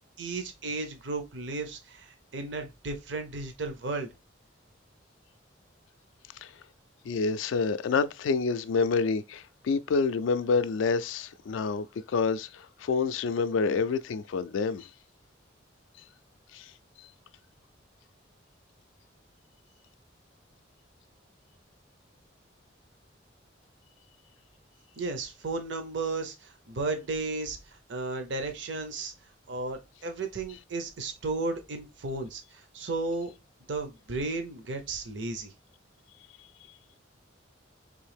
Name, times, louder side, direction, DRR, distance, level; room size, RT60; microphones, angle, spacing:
voice 1, 0.2-4.1 25.0-27.6 27.9-29.1 29.5-33.3 33.7-35.5, right 3 dB, 65° right, 0.7 m, -34 dB
voice 2, 7.0-14.9 16.5-16.7, left 4 dB, 80° left, 0.3 m, -28 dB
3.7 x 2.7 x 3.3 m
head